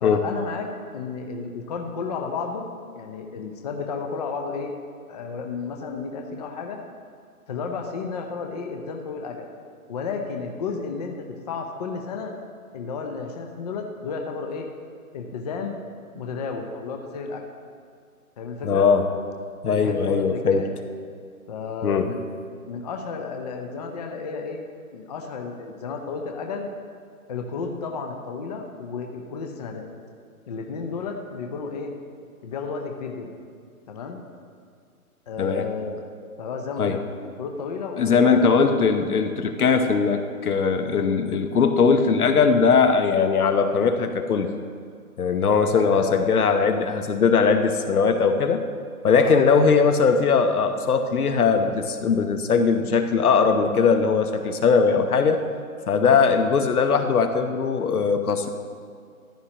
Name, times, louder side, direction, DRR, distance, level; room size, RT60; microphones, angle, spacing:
voice 1, 0.0-2.7 2.9-4.7 5.1-6.8 7.5-9.5 9.9-12.3 12.7-14.7 15.1-15.8 16.1-17.5 18.4-18.9 19.7-20.7 21.5-22.2 22.7-24.6 24.9-26.7 27.3-29.9 30.5-31.9 32.4-33.3 33.9-34.2 35.3-36.0 36.4-37.0 37.4-38.4 45.8-46.3 49.2-49.4 56.0-56.2, left 5 dB, 25° left, 3 dB, 0.6 m, -32 dB
voice 2, 18.6-19.1 19.6-20.7 21.8-22.1 35.4-35.7 36.8-37.0 38.0-44.5 45.2-48.6 49.0-55.4 55.9-58.5, left 5 dB, 75° left, 7 dB, 1.1 m, -20 dB
14.5 x 11.0 x 2.9 m, 2.3 s
hypercardioid pair, 150°, 44 cm